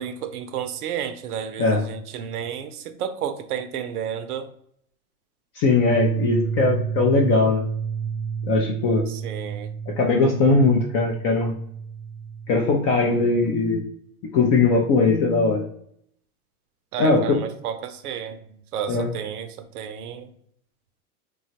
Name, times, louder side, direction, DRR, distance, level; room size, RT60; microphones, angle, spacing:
voice 1, 0.0-4.5 9.1-9.7 16.9-18.4 18.7-20.3, right 8 dB, 75° right, 9 dB, 0.6 m, -32 dB
voice 2, 5.6-7.6 8.5-9.1 10.0-11.5 12.5-13.8 14.3-15.6 17.0-17.4 18.9-19.1, left 3 dB, 30° left, -1 dB, 0.4 m, -20 dB
sound 1, 5.9-12.5, right 6 dB, 30° right, 0.6 m, -30 dB
3.0 x 2.3 x 2.7 m, 0.68 s
hypercardioid pair, 105°, 45 cm